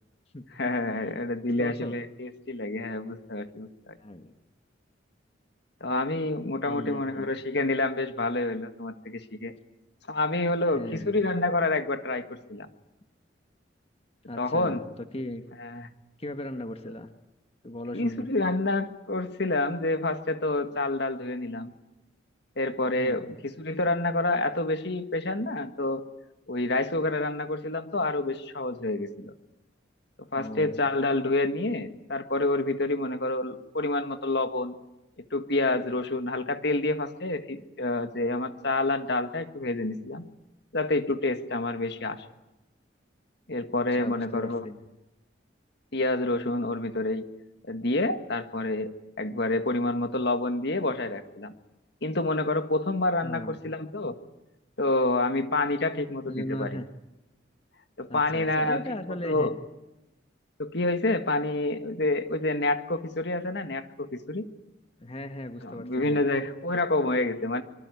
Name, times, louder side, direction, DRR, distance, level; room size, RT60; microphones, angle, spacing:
voice 1, 0.6-4.0 5.8-9.5 10.1-12.7 14.4-14.8 15.6-15.9 17.9-21.7 22.6-26.0 26.5-29.3 30.3-34.7 35.3-40.2 40.7-42.2 43.5-44.6 45.9-47.2 47.6-48.9 49.2-51.5 52.0-54.2 54.8-56.8 58.0-58.8 59.2-59.5 60.6-64.5 65.6-67.6, left 2 dB, 60° left, 8 dB, 1.8 m, -28 dB
voice 2, 1.6-2.0 4.0-4.3 6.6-7.3 10.7-11.1 14.3-15.4 16.2-17.1 17.6-18.3 23.0-23.3 30.3-30.8 43.9-44.8 53.2-53.6 56.3-56.9 58.1-59.5 65.0-66.2, left 1 dB, 30° left, 7 dB, 1.4 m, -37 dB
25.0 x 24.5 x 9.7 m, 0.94 s
head